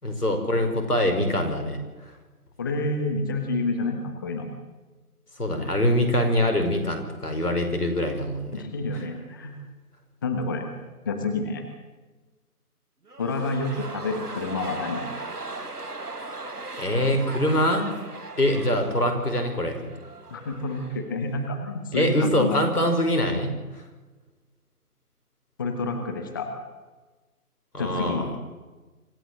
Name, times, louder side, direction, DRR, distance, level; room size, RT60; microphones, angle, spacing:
voice 1, 0.0-2.1 5.4-8.6 8.9-9.0 16.8-17.9 18.4-19.9 21.9-23.6 27.7-28.3, left 1 dB, 80° left, 5 dB, 5.3 m, -24 dB
voice 2, 2.6-4.5 8.5-9.5 10.2-10.6 11.0-11.6 13.2-15.0 20.3-22.6 25.6-26.5 27.8-28.3, left 3 dB, 15° left, 5 dB, 1.1 m, -28 dB
sound 1, 13.1-21.2 21.4-21.5, right 2 dB, 85° right, 1.9 m, -38 dB
25.5 x 14.5 x 7.8 m, 1.2 s
figure-of-eight pair, 155°, 45 cm